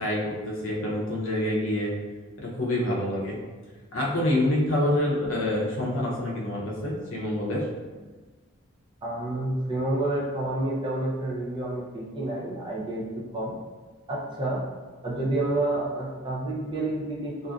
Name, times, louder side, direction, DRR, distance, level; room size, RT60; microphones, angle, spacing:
voice 1, 0.0-1.9 2.4-3.4 3.9-7.7, left 1 dB, 60° left, -4 dB, 0.6 m, -27 dB
voice 2, 9.0-13.0 13.3-13.5 14.1-14.6 15.0-17.5, right 2 dB, 20° right, -5 dB, 0.5 m, -29 dB
2.5 x 2.5 x 2.3 m, 1.3 s
head